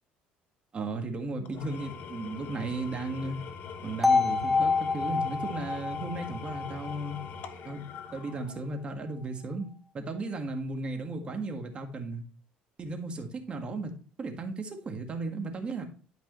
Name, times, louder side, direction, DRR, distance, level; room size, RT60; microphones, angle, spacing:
voice 1, 0.7-3.4 3.8-7.2 7.6-7.8 8.1-9.7 9.9-12.2 12.8-13.9 14.2-15.9, right 2 dB, 30° right, 4 dB, 1.7 m, -35 dB
Engine / Tools, 1.4-8.9, left 6 dB, 65° left, 1.2 m, -43 dB
sound 1, 4.0-8.0, left 4 dB, ahead, 0.9 m, -28 dB
12.0 x 5.3 x 3.1 m, 0.38 s
cardioid pair, 110°, 3 cm